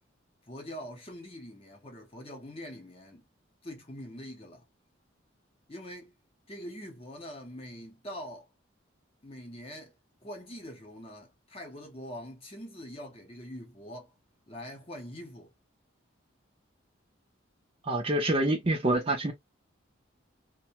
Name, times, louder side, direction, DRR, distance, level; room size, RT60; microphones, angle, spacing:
voice 1, 0.5-3.3 3.6-4.7 5.7-6.1 6.5-8.5 9.2-9.9 10.2-14.1 14.5-15.5, equal, 30° left, 0.8 m, -43 dB
voice 2, 17.8-19.3, right 1 dB, 30° right, 0.5 m, -26 dB
2.5 x 2.1 x 2.8 m
head